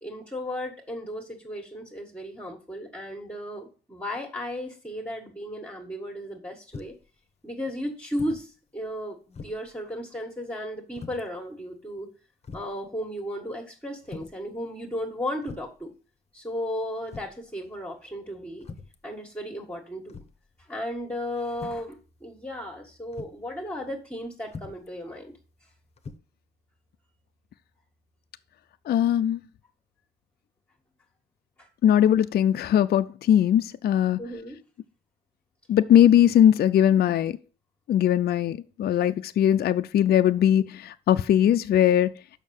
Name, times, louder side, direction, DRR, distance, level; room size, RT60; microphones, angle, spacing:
voice 1, 0.0-6.9 7.4-12.1 12.5-15.9 16.3-18.7 19.0-20.2 20.6-25.3 31.6-31.7 34.2-34.6, equal, 10° left, 1.7 m, -35 dB
sound 1, 6.7-7.1 8.1-8.5 8.9-9.0 9.3-9.7 10.9-11.3 12.0-12.1 12.4-12.8 14.0-14.4 15.4-15.8 17.1-17.4 18.6-19.0 20.1-20.5 21.5-21.9 23.1-23.4 24.5-24.9 26.0-26.2, left 4 dB, 30° left, 0.9 m, -42 dB
voice 2, 28.9-29.4 31.8-34.2 35.7-37.4 37.9-42.1, left 10 dB, 50° left, 0.5 m, -20 dB
6.4 x 5.8 x 7.0 m
cardioid pair, 90°, 20 cm